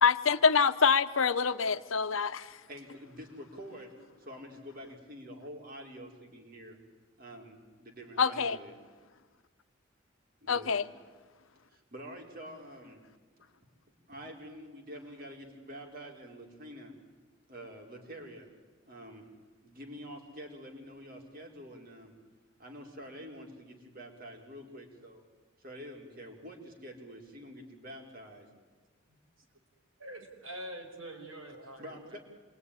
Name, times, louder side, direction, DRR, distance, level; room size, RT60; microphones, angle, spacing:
voice 1, 0.0-2.6 8.2-8.6 10.5-10.8, left 5 dB, 85° left, 11 dB, 1.0 m, -26 dB
voice 2, 2.7-6.8 7.2-8.7 10.4-10.8 11.7-13.0 14.1-16.9 17.5-18.5 18.9-19.3 19.6-22.1 22.6-25.2 25.6-28.5 29.1-29.2 31.8-32.2, equal, 45° right, 1 dB, 4.1 m, -47 dB
voice 3, 30.0-32.2, right 1 dB, 80° right, 3 dB, 5.2 m, -45 dB
27.5 x 21.5 x 9.9 m, 1.4 s
head